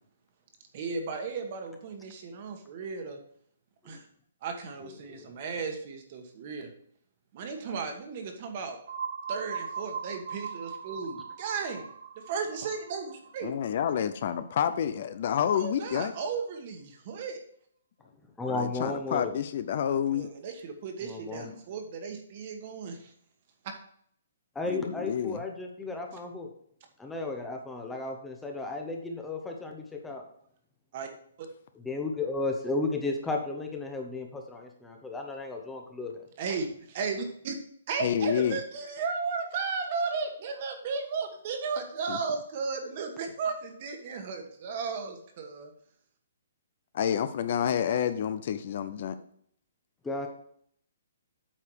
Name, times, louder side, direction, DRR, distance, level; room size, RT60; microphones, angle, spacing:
voice 1, 0.7-3.2 3.8-4.1 4.4-6.7 7.3-8.8 9.3-11.9 12.3-13.6 15.5-17.4 20.1-23.1 23.6-23.7 30.9-31.1 31.4-31.5 36.4-37.6 37.9-45.7, right 5 dB, 35° right, 5 dB, 1.4 m, -35 dB
voice 2, 4.8-5.3 18.4-19.4 21.0-21.5 24.5-26.5 27.0-30.2 31.8-36.3 50.0-50.3, left 3 dB, 5° left, 2 dB, 0.8 m, -34 dB
sound 1, 8.9-14.6, right 6 dB, 55° right, 0.9 m, -40 dB
voice 3, 13.4-16.1 18.5-20.3 24.7-25.4 38.0-38.6 42.1-42.2 46.9-49.2, left 9 dB, 40° left, 12 dB, 0.5 m, -29 dB
8.6 x 4.9 x 4.7 m, 0.65 s
hypercardioid pair, 170°, 0 cm